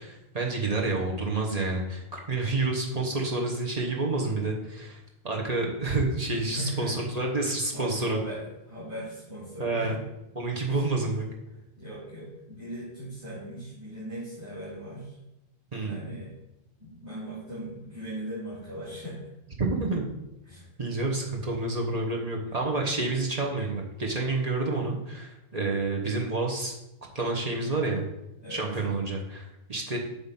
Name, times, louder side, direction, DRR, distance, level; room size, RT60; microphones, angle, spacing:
voice 1, 0.0-5.0 5.2-8.2 9.6-10.0 10.3-11.2 15.7-16.0 19.6-20.0 20.8-26.7 27.1-28.0 28.5-30.0, right 3 dB, 40° right, -1 dB, 1.1 m, -29 dB
voice 2, 6.5-7.0 7.7-10.0 10.6-10.9 11.5-15.2 15.8-16.3 16.8-19.3 20.4-20.7 22.1-22.6 28.4-28.6, right 1 dB, 15° right, -10 dB, 2.7 m, -39 dB
7.9 x 3.7 x 5.6 m, 0.93 s
omnidirectional pair, 1.0 m